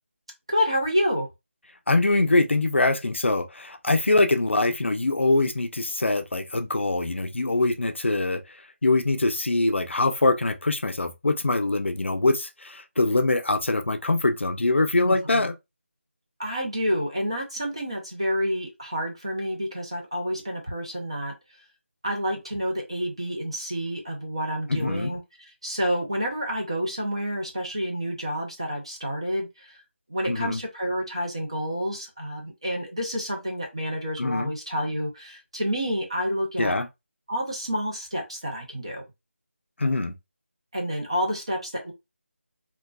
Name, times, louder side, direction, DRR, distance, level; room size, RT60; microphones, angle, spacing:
voice 1, 0.5-1.3 15.0-15.4 16.4-21.3 22.0-25.2 25.6-29.8 30.1-36.7 37.3-39.0 40.7-41.9, equal, 25° right, 0.6 m, -29 dB
voice 2, 1.9-8.4 8.8-15.5 24.7-25.1 30.2-30.6 34.2-34.5 36.6-36.9 39.8-40.1, left 2 dB, 55° left, 0.5 m, -23 dB
3.9 x 2.2 x 2.3 m
figure-of-eight pair, 180°, 7 cm